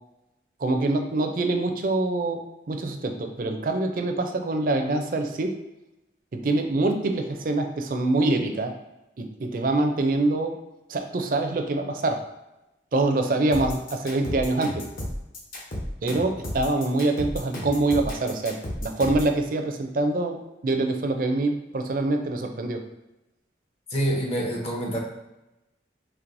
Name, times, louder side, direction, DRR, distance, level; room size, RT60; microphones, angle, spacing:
voice 1, 0.6-2.4 2.7-5.5 6.3-8.8 9.2-10.6 10.9-12.2 12.9-14.8 16.0-22.8, right 2 dB, 50° right, 5 dB, 0.4 m, -25 dB
sound 1, 13.5-19.3, equal, 50° left, 1.0 m, -33 dB
voice 2, 23.9-25.0, right 1 dB, 35° left, 0 dB, 0.8 m, -26 dB
4.6 x 3.1 x 2.6 m, 0.96 s
head